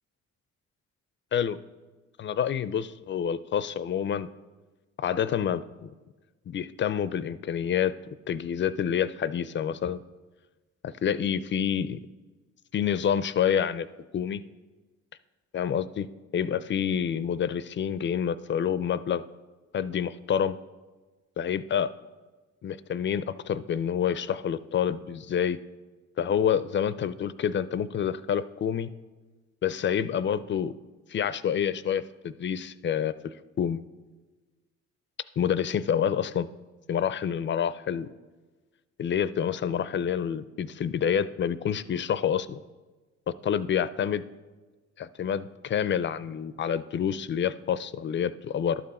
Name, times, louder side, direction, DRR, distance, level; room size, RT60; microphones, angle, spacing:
voice 1, 2.2-4.3 5.0-5.9 6.5-7.9 8.3-10.0 10.8-12.0 12.7-13.9 14.1-14.4 15.5-16.1 16.3-19.2 19.7-20.6 21.4-21.9 22.6-25.6 26.2-28.9 29.6-30.7 31.1-33.1 33.6-33.8 35.4-36.5 36.9-38.1 39.0-42.6 43.3-44.2 45.0-48.8, left 8 dB, 40° left, 16 dB, 0.4 m, -28 dB
12.0 x 6.8 x 4.2 m, 1.3 s
cardioid pair, 90°, 30 cm